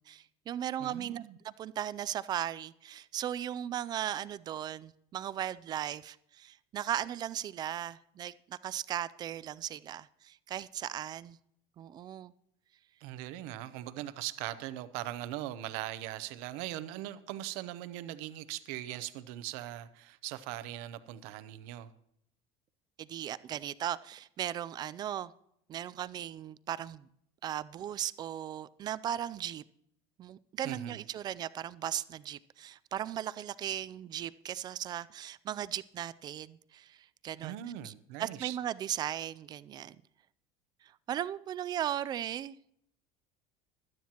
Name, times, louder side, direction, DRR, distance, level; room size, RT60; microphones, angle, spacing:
voice 1, 0.0-11.4 11.8-12.3 23.0-25.3 25.7-27.1 27.4-29.6 30.2-37.0 37.2-37.5 37.8-37.9 38.2-40.0 41.1-42.6, right 11 dB, 30° right, 0.4 m, -37 dB
voice 2, 0.8-1.4 13.0-21.9 30.6-31.0 37.4-38.6, right 14 dB, 70° right, 0.8 m, -40 dB
16.5 x 12.0 x 2.9 m
cardioid pair, 140°, 13 cm